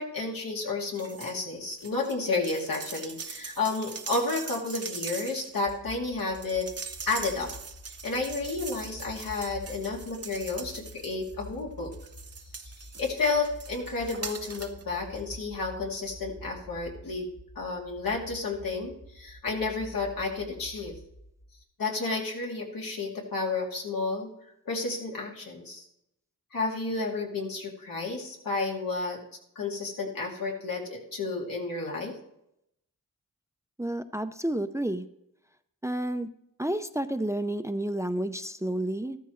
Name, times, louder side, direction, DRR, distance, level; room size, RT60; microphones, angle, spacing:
voice 1, 0.0-6.7 7.1-7.5 7.8-11.9 12.6-17.3 17.6-21.0 21.8-24.3 24.6-25.9 26.5-29.2 29.6-32.2, left 3 dB, 80° left, -2 dB, 2.6 m, -31 dB
sound 1, 0.9-1.4 1.7-11.5 11.9-14.8 15.2-15.3, right 5 dB, 45° right, 0.9 m, -42 dB
sound 2, 5.7-21.6, left 1 dB, 25° left, 1.4 m, -48 dB
voice 2, 33.8-35.1 35.8-36.3 36.6-39.2, right 1 dB, 10° right, 9 dB, 0.6 m, -30 dB
13.5 x 13.0 x 3.2 m, 0.79 s
cardioid pair, 65°, 34 cm